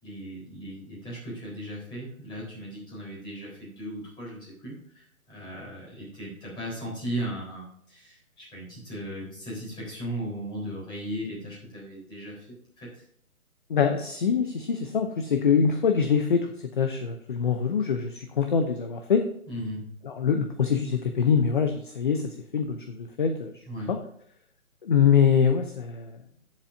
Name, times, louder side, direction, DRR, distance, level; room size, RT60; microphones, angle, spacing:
voice 1, 0.0-12.5 12.8-13.0 19.5-20.0 23.7-23.9, right 1 dB, 10° left, -5 dB, 4.0 m, -37 dB
voice 2, 13.7-16.5 16.8-19.2 20.1-23.5 23.9-24.0 24.8-26.1, left 7 dB, 35° left, 6 dB, 0.7 m, -24 dB
15.0 x 7.4 x 2.6 m, 0.69 s
hypercardioid pair, 160°, 43 cm